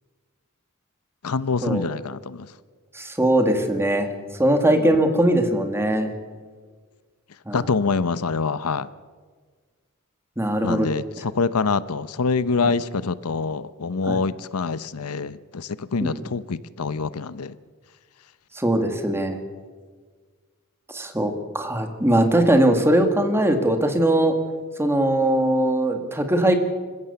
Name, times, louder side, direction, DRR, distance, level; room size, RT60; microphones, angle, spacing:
voice 1, 1.2-2.5 4.7-5.0 7.5-8.9 10.6-17.5, left 4 dB, 85° left, 17 dB, 0.7 m, -25 dB
voice 2, 2.9-4.1 4.4-6.1 7.5-7.6 10.4-10.9 12.6-12.7 14.1-14.2 16.0-16.1 18.6-19.4 20.9-24.3 24.8-26.5, right 1 dB, 10° right, 6 dB, 2.1 m, -20 dB
26.5 x 15.0 x 7.0 m, 1.5 s
head